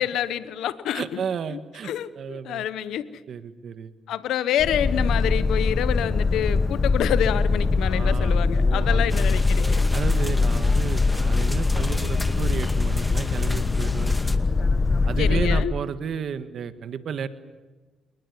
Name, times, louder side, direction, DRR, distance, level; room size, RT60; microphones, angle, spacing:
voice 1, 0.0-1.2 1.5-3.2 4.1-9.9 15.2-15.7, left 10 dB, 80° left, 15 dB, 1.0 m, -27 dB
voice 2, 0.9-1.9 2.2-2.6 3.3-3.9 7.8-9.0 9.9-14.2 15.0-17.3, right 7 dB, 60° right, 11 dB, 1.6 m, -32 dB
Boat Water vehicle, 4.6-15.6, left 3 dB, 35° left, 1.2 m, -22 dB
sound 1, 9.1-14.4, left 1 dB, 10° left, 2.2 m, -37 dB
29.0 x 19.5 x 9.7 m, 1.3 s
cardioid pair, 90°, 0 cm